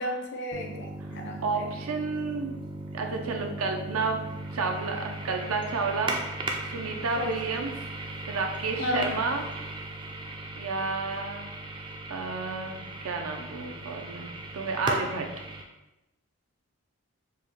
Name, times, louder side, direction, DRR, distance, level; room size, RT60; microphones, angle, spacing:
voice 1, 0.0-1.7 7.2-7.7 8.8-9.1, left 1 dB, 50° left, 2 dB, 0.6 m, -33 dB
sound 1, 0.5-15.6, right 2 dB, 20° right, 0.3 m, -37 dB
voice 2, 1.4-2.5 2.9-4.2 4.5-6.2 6.6-7.7 8.1-9.4 10.6-11.5 12.1-15.3, right 4 dB, 80° right, 3 dB, 0.6 m, -31 dB
4.7 x 2.2 x 3.4 m, 1.0 s
head